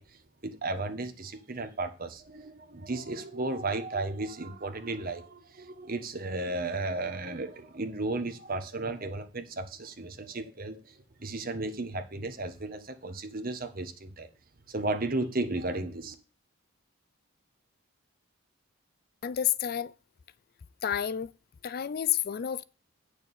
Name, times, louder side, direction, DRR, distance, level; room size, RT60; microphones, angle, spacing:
voice 1, 0.0-14.3 14.7-16.1, right 2 dB, 45° right, 1.3 m, -34 dB
voice 2, 19.2-19.9 20.8-21.3 21.6-22.6, left 10 dB, 45° left, 0.4 m, -29 dB
8.7 x 6.7 x 5.4 m
head